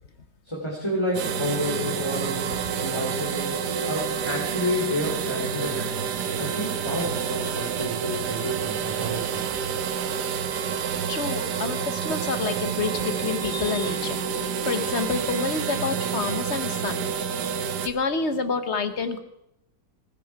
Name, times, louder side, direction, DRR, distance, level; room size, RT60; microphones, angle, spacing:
voice 1, 0.4-2.5 2.8-3.5 3.9-6.1 6.4-9.6, equal, 15° left, -3 dB, 3.2 m, -30 dB
sound 1, 1.1-17.9, right 7 dB, 75° right, 1.6 m, -28 dB
voice 2, 11.1-14.2 14.6-17.0 17.8-19.2, left 4 dB, 45° left, 10 dB, 1.3 m, -28 dB
19.5 x 15.0 x 4.8 m, 0.79 s
omnidirectional pair, 1.8 m